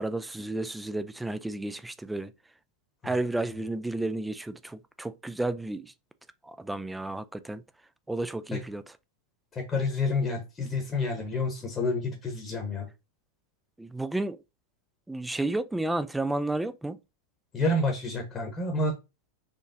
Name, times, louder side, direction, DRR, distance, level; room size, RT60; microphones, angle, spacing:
voice 1, 0.0-2.3 3.0-5.9 6.4-7.6 8.1-8.8 13.8-14.4 15.1-17.0, right 2 dB, 5° right, 0.3 m, -32 dB
voice 2, 9.5-12.9 17.5-18.9, left 2 dB, 20° left, 1.0 m, -29 dB
4.2 x 3.0 x 2.6 m
figure-of-eight pair, 90°, 0 cm